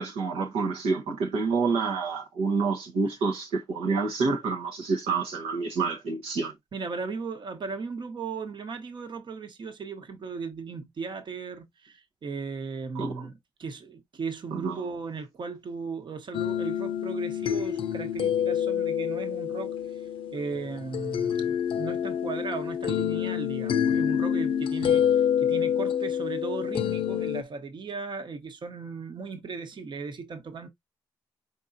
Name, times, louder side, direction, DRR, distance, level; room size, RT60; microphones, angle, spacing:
voice 1, 0.0-6.5 12.9-13.3 14.5-14.8, right 4 dB, 80° right, 1.0 m, -28 dB
voice 2, 6.7-20.0 20.3-30.7, right 4 dB, 55° right, 1.1 m, -37 dB
sound 1, 16.3-27.4, left 9 dB, 65° left, 0.5 m, -27 dB
5.3 x 3.4 x 2.7 m
supercardioid pair, 55°, 10 cm